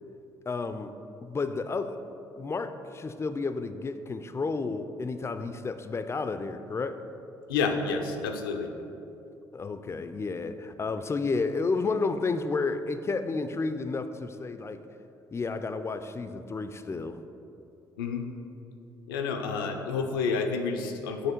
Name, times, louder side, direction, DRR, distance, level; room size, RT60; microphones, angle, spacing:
voice 1, 0.5-0.9 1.2-7.1 9.5-14.8 15.3-17.2, left 4 dB, 25° left, 9 dB, 0.4 m, -31 dB
voice 2, 7.5-8.7 18.0-18.3 19.1-21.3, left 5 dB, 80° left, 4 dB, 0.5 m, -29 dB
8.3 x 3.1 x 4.4 m, 2.8 s
hypercardioid pair, 50°, 11 cm